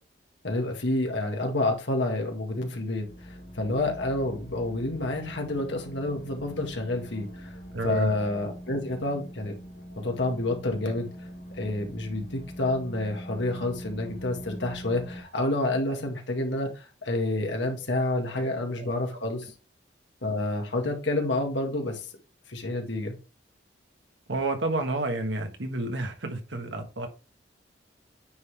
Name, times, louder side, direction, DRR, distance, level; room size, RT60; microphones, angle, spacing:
voice 1, 0.4-7.5 7.8-9.5 9.9-11.1 11.6-19.5 20.2-22.1 22.5-23.1, left 2 dB, 80° left, 1.8 m, -29 dB
sound 1, 3.0-15.2, equal, 60° left, 1.5 m, -43 dB
voice 2, 7.7-8.2 15.9-16.0 18.3-18.4 18.8-18.9 24.3-27.1, right 2 dB, 85° right, 1.5 m, -30 dB
9.2 x 3.8 x 3.4 m
head